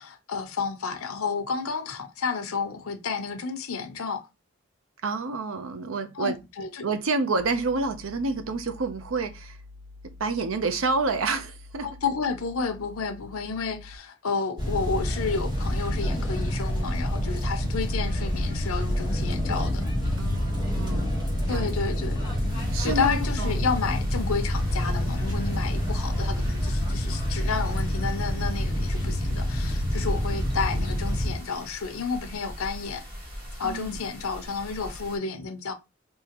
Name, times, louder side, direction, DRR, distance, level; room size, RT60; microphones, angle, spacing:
voice 1, 0.0-4.3 6.1-6.8 11.8-19.9 21.5-22.2 22.8-33.0 33.6-35.7, left 5 dB, 90° left, 0.7 m, -31 dB
voice 2, 5.0-6.4 6.8-9.6 10.2-11.9 20.2-21.7 22.7-23.7 33.6-34.0, right 3 dB, 75° right, 0.6 m, -29 dB
sound 1, 7.4-14.0, left 3 dB, 30° left, 1.0 m, -47 dB
sound 2, 14.6-31.3, equal, 20° right, 1.4 m, -27 dB
sound 3, 22.5-35.2, equal, 45° right, 1.6 m, -42 dB
3.7 x 2.8 x 2.9 m
head